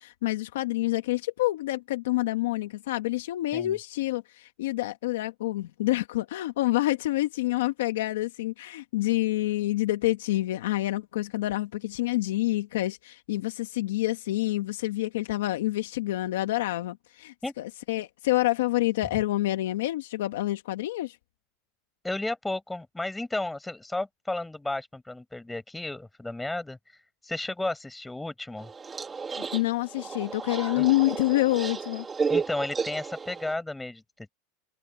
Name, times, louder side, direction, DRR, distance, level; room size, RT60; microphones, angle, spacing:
voice 1, 0.0-21.2 29.4-32.0, left 17 dB, 85° left, 1.4 m, -27 dB
voice 2, 22.0-28.7 30.7-30.9 32.3-34.3, left 2 dB, 5° left, 5.1 m, -33 dB
sound 1, 28.6-33.5, right 5 dB, 15° right, 2.0 m, -33 dB
open air
supercardioid pair, 150°, 0 cm